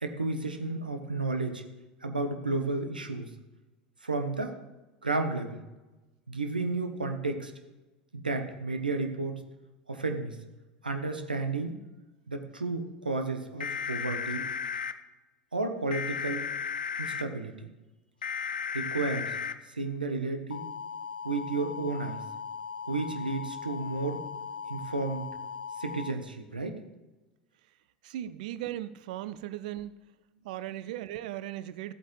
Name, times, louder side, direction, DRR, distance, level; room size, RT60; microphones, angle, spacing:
voice 1, 0.0-1.6 2.0-3.3 4.0-4.6 5.0-5.6 6.3-7.5 8.1-9.4 9.9-10.4 10.8-11.8 12.3-14.4 15.5-16.5 17.0-17.6 18.7-19.3 19.8-20.7 21.2-22.2 22.9-24.2 24.7-25.2 25.8-26.8, right 3 dB, 90° right, 6 dB, 1.0 m, -32 dB
sound 1, 13.6-14.9 15.9-17.2 18.2-19.5 20.5-26.1, left 6 dB, 80° left, 0.5 m, -36 dB
voice 2, 28.0-29.9 30.4-31.9, right 13 dB, 60° right, 14 dB, 0.5 m, -37 dB
14.5 x 8.2 x 3.2 m, 1.1 s
figure-of-eight pair, 75°, 5 cm